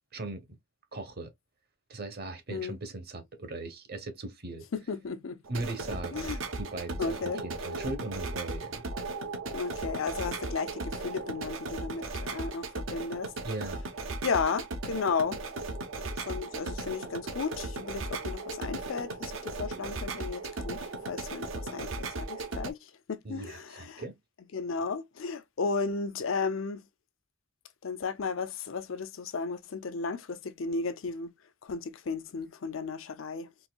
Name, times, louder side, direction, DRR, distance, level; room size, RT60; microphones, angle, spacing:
voice 1, 0.1-0.5 0.9-1.3 1.9-4.6 5.5-6.3 6.6-8.8 13.4-13.8 23.2-24.1, right 2 dB, 55° right, 0.9 m, -38 dB
voice 2, 4.7-5.4 6.1-6.4 7.0-7.4 9.5-13.3 14.2-15.4 16.2-20.8 21.1-24.0 24.5-26.8 27.8-31.3 31.6-33.5, left 4 dB, 80° left, 0.6 m, -34 dB
sound 1, 5.4-22.7, right 3 dB, 80° right, 0.7 m, -37 dB
4.1 x 2.6 x 2.2 m
head